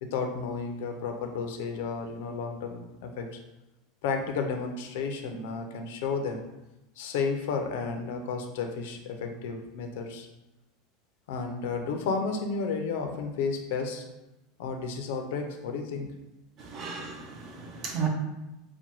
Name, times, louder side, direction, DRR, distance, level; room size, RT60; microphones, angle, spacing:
voice 1, 0.0-3.3 4.0-6.4 7.0-10.3 11.3-14.0 14.6-16.1, left 5 dB, 70° left, 4 dB, 0.5 m, -32 dB
voice 2, 16.6-18.1, right 7 dB, 35° right, 2 dB, 0.6 m, -34 dB
5.9 x 2.2 x 3.0 m, 0.97 s
supercardioid pair, 170°, 0 cm